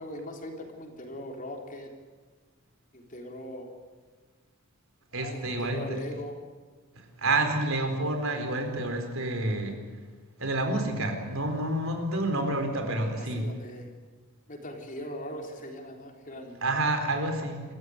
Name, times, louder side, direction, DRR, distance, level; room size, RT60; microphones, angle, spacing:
voice 1, 0.0-1.9 2.9-3.7 5.2-6.4 13.2-13.9 14.5-16.6, left 1 dB, 40° left, 2 dB, 3.8 m, -40 dB
voice 2, 5.1-5.8 7.2-9.8 10.4-13.5 16.6-17.6, right 2 dB, 65° right, 5 dB, 4.2 m, -28 dB
27.5 x 15.0 x 9.5 m, 1.4 s
head